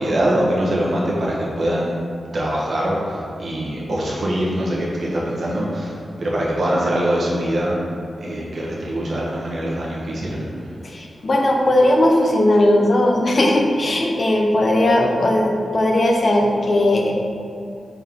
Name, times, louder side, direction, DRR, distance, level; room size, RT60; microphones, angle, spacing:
voice 1, 0.0-2.0 2.3-7.8 8.2-10.8, right 1 dB, 50° right, -5 dB, 1.2 m, -23 dB
voice 2, 10.8-17.1, left 1 dB, 40° left, 0 dB, 0.7 m, -17 dB
6.1 x 4.3 x 3.6 m, 2.5 s
wide cardioid pair, 165°, 0 cm